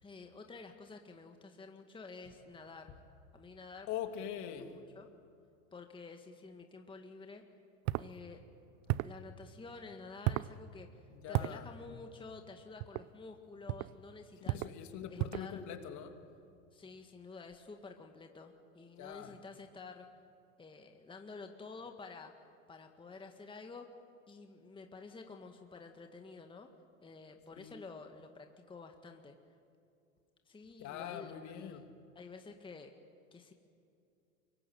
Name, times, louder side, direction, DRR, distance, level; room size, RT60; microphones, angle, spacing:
voice 1, 0.0-2.9 3.3-3.9 4.2-4.3 4.7-5.1 5.7-7.4 8.0-8.4 9.0-11.0 11.3-14.6 15.1-15.6 16.7-20.1 20.6-22.3 22.7-23.9 24.3-26.7 27.0-29.4 30.5-31.9 32.2-32.9 33.3-33.5, left 4 dB, 10° left, 4 dB, 1.8 m, -50 dB
voice 2, 3.9-4.8 11.1-12.0 14.4-16.2 19.0-19.4 27.6-27.7 30.8-31.9, left 9 dB, 45° left, 6 dB, 2.8 m, -43 dB
sound 1, 7.9-8.1 8.9-9.2 10.2-10.5 11.3-11.6 12.8-13.1 13.7-13.9 14.5-14.8 15.2-15.5, right 18 dB, 45° right, 0.7 m, -34 dB
24.5 x 22.5 x 9.3 m, 2.5 s
hypercardioid pair, 100°, 40 cm